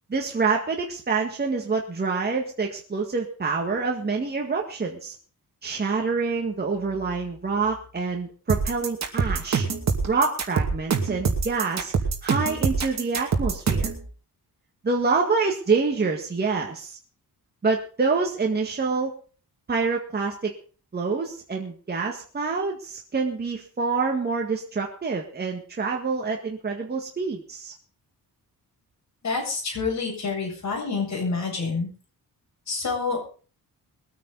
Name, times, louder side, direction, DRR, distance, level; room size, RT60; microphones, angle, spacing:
voice 1, 0.1-5.1 5.6-9.7 10.1-11.9 12.2-13.9 14.8-17.0 17.6-19.1 19.7-20.5 20.9-27.7, right 4 dB, 25° right, 1 dB, 1.9 m, -26 dB
sound 1, 8.5-14.0, right 5 dB, 45° right, 2.5 m, -24 dB
voice 2, 29.2-31.9 32.7-33.3, left 4 dB, 50° left, -1 dB, 7.9 m, -28 dB
22.0 x 9.2 x 4.1 m, 0.39 s
wide cardioid pair, 135°, 37 cm